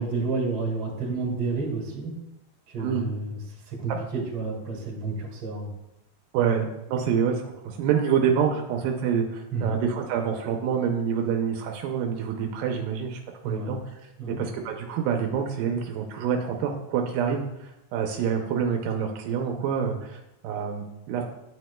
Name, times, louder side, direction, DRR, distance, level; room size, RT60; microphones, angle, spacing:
voice 1, 0.0-2.1 2.7-3.4 3.7-5.7 9.5-9.7 13.4-13.7 14.2-14.4, right 3 dB, 50° right, -1 dB, 2.8 m, -30 dB
voice 2, 6.3-7.4 7.6-13.2 13.5-13.8 14.3-21.2, right 7 dB, 85° right, 3 dB, 2.4 m, -27 dB
9.4 x 9.2 x 2.2 m, 0.89 s
omnidirectional pair, 3.9 m